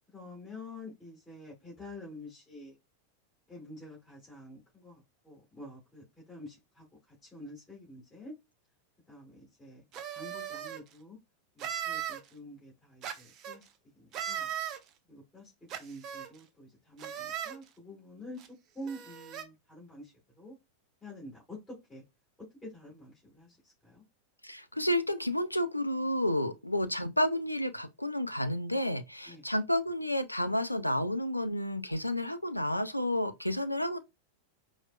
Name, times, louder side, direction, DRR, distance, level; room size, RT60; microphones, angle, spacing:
voice 1, 0.1-2.8 3.5-8.3 9.1-11.2 11.5-13.7 13.9-14.5 15.0-15.5 15.8-18.4 18.7-20.6 21.0-22.0 22.4-24.0 29.3-29.5, left 1 dB, 10° left, 2.1 m, -48 dB
sound 1, 9.9-10.8 11.6-12.2 13.0-13.6 14.1-14.8 15.7-16.3 17.0-17.6 18.4-18.5 18.8-19.4, right 10 dB, 35° right, 0.5 m, -37 dB
voice 2, 24.4-34.0, left 1 dB, 90° left, 0.4 m, -31 dB
4.7 x 2.0 x 2.3 m
figure-of-eight pair, 90°, 0 cm